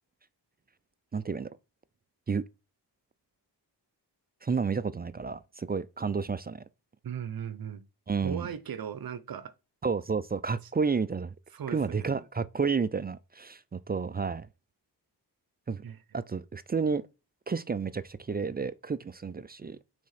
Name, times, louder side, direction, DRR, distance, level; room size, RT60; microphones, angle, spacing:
voice 1, 1.1-1.5 2.3-2.4 4.4-6.6 8.1-8.5 9.8-11.3 11.7-14.5 15.7-15.8 16.1-17.0 17.5-19.8, right 5 dB, 25° right, 0.3 m, -31 dB
voice 2, 7.0-7.8 8.2-9.5 11.5-12.1 15.8-16.0, right 8 dB, 55° right, 0.9 m, -37 dB
6.2 x 4.3 x 5.7 m
wide cardioid pair, 135°, 42 cm